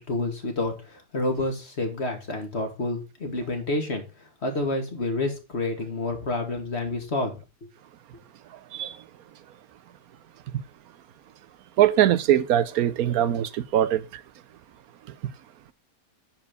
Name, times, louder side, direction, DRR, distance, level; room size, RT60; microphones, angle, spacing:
voice 1, 0.0-7.7, left 2 dB, 45° left, 2.4 m, -29 dB
voice 2, 11.8-14.0, right 11 dB, 80° right, 1.2 m, -21 dB
9.6 x 4.4 x 6.8 m
omnidirectional pair, 1.5 m